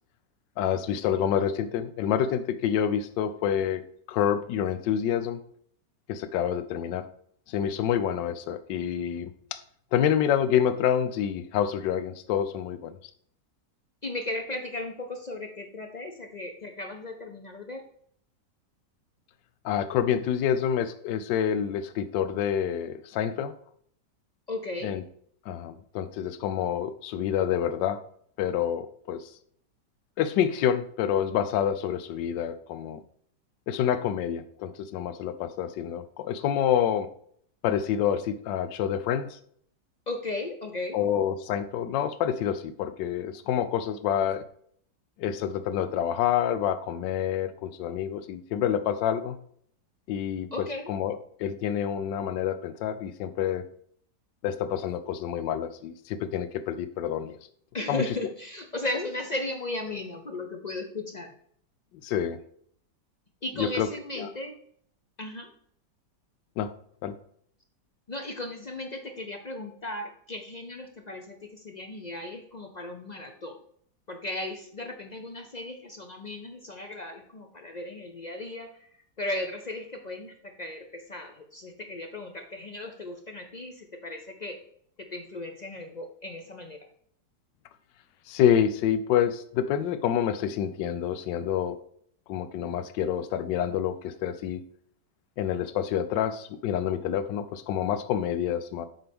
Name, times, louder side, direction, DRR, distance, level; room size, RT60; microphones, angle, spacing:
voice 1, 0.6-3.8 4.1-5.4 6.1-7.1 7.5-9.6 9.9-12.9 19.6-23.5 24.8-25.0 25.5-28.0 28.4-29.3 30.2-33.0 33.7-37.1 37.6-39.4 40.9-44.4 45.2-49.4 50.1-50.5 50.9-53.6 54.4-57.3 57.9-58.0 62.0-62.4 63.6-63.9 64.2-64.3 66.6-66.7 67.0-67.1 88.3-91.8 92.3-94.6 95.4-98.9, left 9 dB, 90° left, 12 dB, 1.3 m, -27 dB
voice 2, 14.0-17.8 24.5-25.0 40.1-41.0 50.5-50.9 57.7-61.3 63.4-64.6 65.2-65.5 68.1-73.6 74.1-78.9 79.2-84.6 85.0-86.8, left 2 dB, 60° left, 4 dB, 0.4 m, -36 dB
7.9 x 5.6 x 3.5 m, 0.63 s
omnidirectional pair, 1.9 m